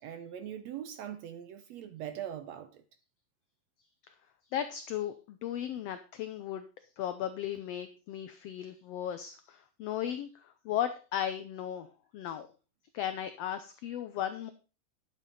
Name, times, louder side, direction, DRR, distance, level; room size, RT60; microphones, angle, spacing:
voice 1, 0.0-2.8, right 10 dB, 75° right, 1.7 m, -41 dB
voice 2, 4.5-6.7 7.0-11.9 12.1-12.5 12.9-14.5, left 10 dB, 85° left, 1.4 m, -36 dB
10.0 x 8.2 x 4.1 m
omnidirectional pair, 3.7 m